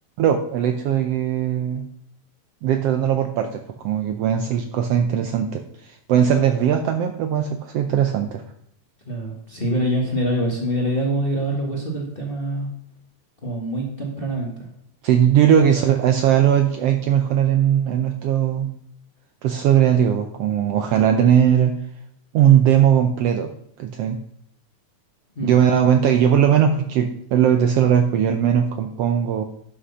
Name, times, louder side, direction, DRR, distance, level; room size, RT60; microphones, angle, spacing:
voice 1, 0.2-1.8 2.6-8.4 15.0-18.7 19.4-21.7 22.3-23.5 23.8-24.2 25.4-29.4, right 9 dB, 75° right, 6 dB, 1.5 m, -19 dB
voice 2, 9.0-12.7 13.4-14.7 15.7-15.9 25.3-25.6, right 1 dB, 25° left, -1 dB, 1.3 m, -25 dB
11.5 x 6.3 x 5.6 m, 0.69 s
omnidirectional pair, 3.3 m